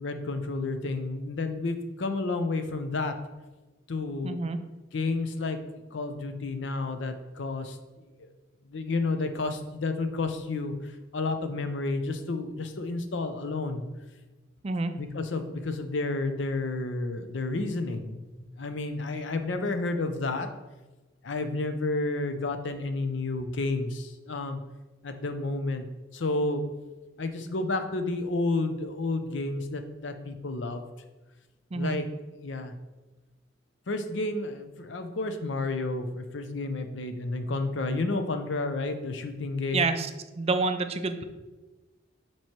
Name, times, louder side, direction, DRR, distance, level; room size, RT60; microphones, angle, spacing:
voice 1, 0.0-3.1 3.9-4.4 4.9-5.6 5.9-7.8 8.2-8.3 8.6-13.8 14.8-20.5 21.2-24.6 25.0-25.9 26.1-26.6 27.2-30.9 31.7-32.0 32.4-32.7 33.9-39.9, left 3 dB, 75° left, 8 dB, 0.6 m, -31 dB
voice 2, 4.2-4.6 14.6-14.9 31.7-32.0 39.7-40.1 40.3-41.2, right 3 dB, 35° right, 8 dB, 0.4 m, -28 dB
7.3 x 3.0 x 4.5 m, 1.2 s
head